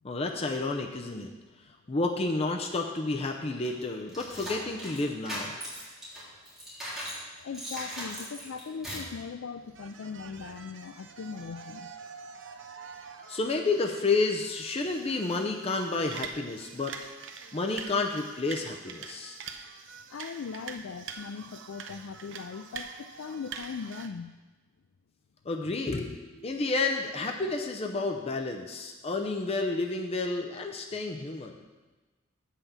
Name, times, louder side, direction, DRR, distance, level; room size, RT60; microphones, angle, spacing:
voice 1, 0.0-1.3 1.9-5.6 6.7-6.8 13.3-16.9 17.5-19.4 25.5-31.6, left 3 dB, 30° left, 3 dB, 0.6 m, -30 dB
sound 1, 3.6-7.2 7.5-9.1, equal, ahead, 3.1 m, -39 dB
voice 2, 7.3-11.9 20.1-24.3, left 5 dB, 80° left, 8 dB, 0.4 m, -39 dB
sound 2, 9.7-24.1, right 6 dB, 65° right, 0.6 m, -45 dB
8.1 x 5.7 x 7.2 m, 1.2 s
head